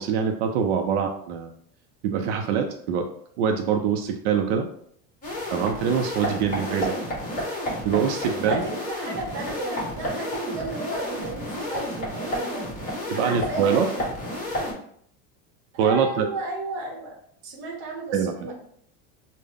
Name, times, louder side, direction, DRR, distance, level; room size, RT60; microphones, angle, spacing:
voice 1, 0.0-1.5 2.0-3.1 3.4-4.7 5.5-6.9 7.8-8.7 13.1-13.9 15.8-16.3 18.1-18.3, right 7 dB, 80° right, 5 dB, 0.5 m, -24 dB
sound 1, 5.2-14.7, equal, 25° left, 1.3 m, -31 dB
voice 2, 8.4-12.7 13.1-13.8 15.7-17.1 17.4-18.5, right 2 dB, 35° right, 1 dB, 0.9 m, -33 dB
3.7 x 2.1 x 3.3 m, 0.65 s
cardioid pair, 160°, 34 cm